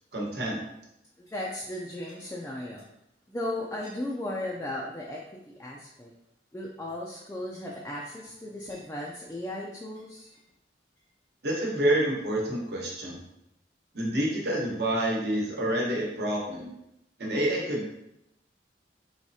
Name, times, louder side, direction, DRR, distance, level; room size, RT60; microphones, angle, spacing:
voice 1, 0.1-0.6 11.4-13.2 13.9-16.7 17.2-17.9, right 1 dB, 60° right, -3 dB, 1.1 m, -28 dB
voice 2, 1.2-2.8 3.3-5.2 5.5-6.1 6.5-10.3, left 1 dB, 15° left, -3 dB, 0.4 m, -36 dB
4.7 x 3.1 x 2.7 m, 0.84 s
head